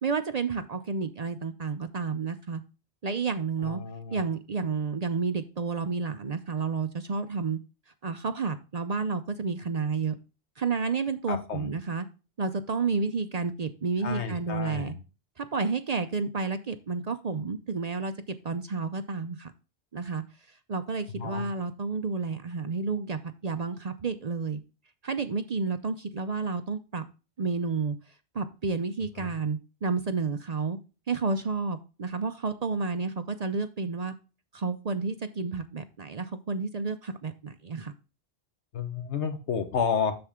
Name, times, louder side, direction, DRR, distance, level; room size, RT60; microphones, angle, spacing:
voice 1, 0.0-2.6 3.0-3.8 4.1-7.6 8.0-10.2 10.6-12.1 12.4-14.9 15.4-18.1 18.4-19.5 19.9-20.2 20.7-24.6 25.0-27.0 27.4-28.0 28.3-30.8 31.1-34.1 34.5-37.9, right 4 dB, 45° right, 10 dB, 0.6 m, -30 dB
voice 2, 3.6-4.2 11.3-11.7 14.0-14.9 21.2-21.5 29.2-29.3 38.7-40.1, left 6 dB, 85° left, 8 dB, 1.4 m, -31 dB
7.8 x 6.8 x 3.6 m, 0.32 s
omnidirectional pair, 1.1 m